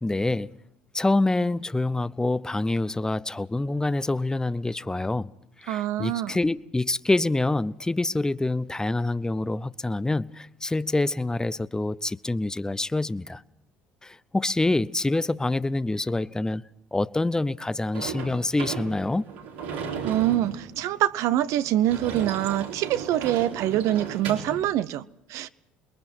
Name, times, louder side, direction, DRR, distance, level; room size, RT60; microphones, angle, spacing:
voice 1, 0.0-0.6 0.9-5.3 5.6-13.4 14.0-16.6 16.9-19.2, left 2 dB, 10° left, 0.7 m, -26 dB
voice 2, 5.7-6.4 20.0-25.5, right 13 dB, 65° right, 0.7 m, -25 dB
Sliding door / Slam, 17.9-24.6, right 6 dB, 90° right, 3.7 m, -36 dB
27.5 x 22.0 x 4.5 m
hypercardioid pair, 65°, 6 cm